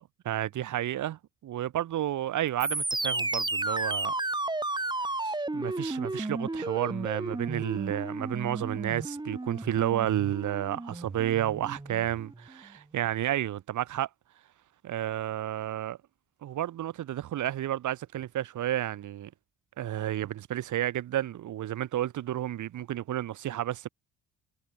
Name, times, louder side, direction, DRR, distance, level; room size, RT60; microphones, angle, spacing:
voice 1, 0.0-4.1 5.2-14.1 14.8-16.0 16.4-19.3 19.8-23.9, right 12 dB, 75° right, 6.8 m, -31 dB
sound 1, 2.6-12.5, right 2 dB, 15° right, 4.6 m, -33 dB
cardioid pair, 90°, 30 cm